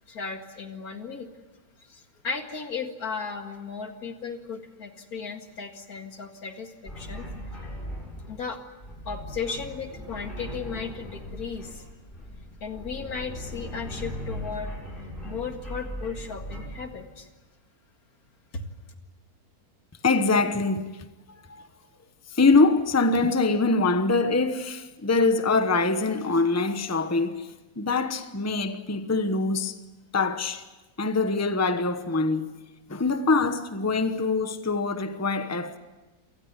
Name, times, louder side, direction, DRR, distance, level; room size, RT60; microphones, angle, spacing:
voice 1, 0.1-1.3 1.8-7.3 8.3-8.6 9.1-11.8 12.6-14.7 15.2-17.3 18.5-18.7, left 5 dB, 75° left, 2.5 m, -35 dB
sound 1, 6.9-17.0, equal, 35° left, 7.9 m, -38 dB
voice 2, 20.0-20.9 21.5-21.7 22.3-27.5 27.8-29.7 30.1-30.6 31.0-32.5 32.9-35.8, left 3 dB, 10° left, 1.0 m, -24 dB
27.5 x 19.0 x 8.2 m
omnidirectional pair, 1.6 m